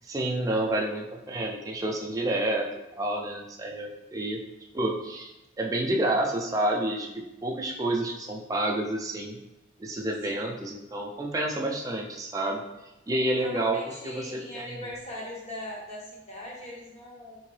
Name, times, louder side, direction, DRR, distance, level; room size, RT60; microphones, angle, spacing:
voice 1, 0.0-2.7 2.9-4.4 4.7-5.3 5.6-9.4 9.8-12.6 13.1-13.8 14.0-14.8, right 1 dB, 15° right, 0 dB, 0.4 m, -29 dB
voice 2, 10.3-10.6 13.1-17.4, equal, 30° left, -5 dB, 1.0 m, -40 dB
3.7 x 2.6 x 3.2 m, 0.96 s
head